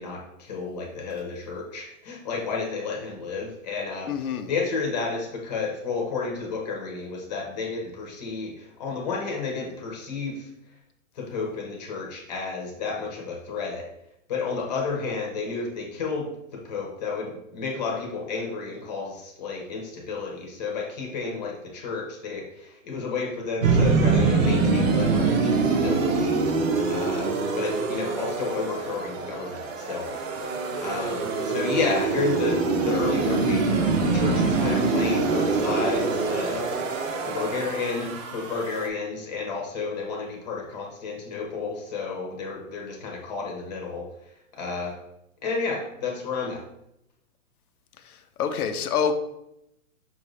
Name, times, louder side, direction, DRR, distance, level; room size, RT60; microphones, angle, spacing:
voice 1, 0.0-4.1 4.5-10.5 11.2-13.8 14.3-26.3 26.9-30.2 30.8-36.6 37.2-44.0 44.5-44.9 45.4-46.6, left 4 dB, 30° left, 0 dB, 0.9 m, -31 dB
voice 2, 4.1-4.5 32.8-33.0 48.0-49.1, left 7 dB, 85° left, 7 dB, 0.7 m, -27 dB
sound 1, 23.6-38.9, right 4 dB, 65° right, 0.8 m, -24 dB
5.8 x 2.6 x 3.1 m, 0.82 s
hypercardioid pair, 165°, 43 cm